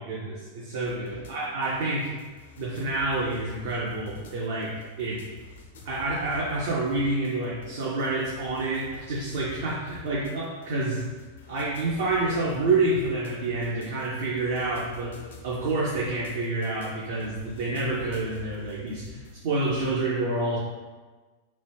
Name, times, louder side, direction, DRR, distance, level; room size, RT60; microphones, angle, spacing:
voice 1, 0.0-2.1 2.6-5.3 5.8-11.0 11.5-20.6, right 2 dB, 55° right, -4 dB, 0.4 m, -28 dB
sound 1, 0.8-20.0, left 4 dB, 65° left, 0.4 m, -48 dB
2.9 x 2.1 x 3.2 m, 1.3 s
figure-of-eight pair, 90°, 0 cm